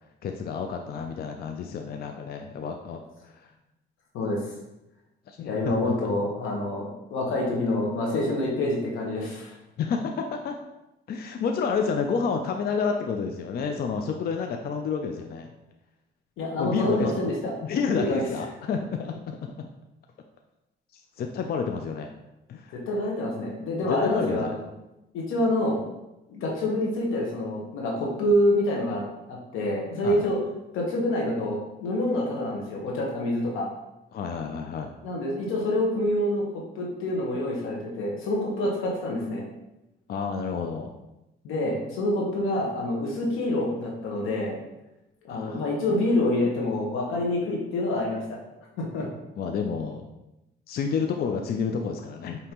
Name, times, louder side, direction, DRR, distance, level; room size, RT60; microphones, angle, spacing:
voice 1, 0.2-3.5 5.3-6.1 9.8-10.6 11.1-15.5 16.6-17.1 17.6-19.7 21.2-22.1 22.5-22.7 23.9-24.6 30.0-30.3 34.1-34.9 40.1-40.9 45.3-45.6 49.4-50.0 50.7-52.5, left 5 dB, 50° left, 4 dB, 0.4 m, -29 dB
voice 2, 5.4-9.5 16.4-17.5 17.9-18.2 22.9-24.6 25.1-25.8 26.3-29.0 29.3-30.4 30.7-33.7 35.0-36.4 36.7-39.4 41.4-44.6 45.2-48.4 48.8-49.1, left 1 dB, 90° left, -2 dB, 1.1 m, -27 dB
5.2 x 2.9 x 2.9 m, 0.94 s
cardioid pair, 90°, 20 cm